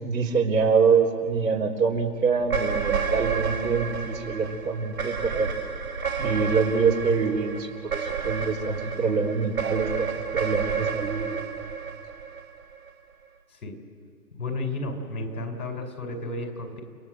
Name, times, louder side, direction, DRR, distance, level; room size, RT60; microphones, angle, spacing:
voice 1, 0.0-5.5 6.2-10.1 10.3-11.3, right 5 dB, 85° right, -3 dB, 4.2 m, -25 dB
sound 1, 2.4-12.9, right 6 dB, 55° right, 2.3 m, -30 dB
voice 2, 14.4-16.8, left 2 dB, 65° left, 4 dB, 5.0 m, -32 dB
29.5 x 18.0 x 7.9 m, 2.3 s
hypercardioid pair, 165°, 49 cm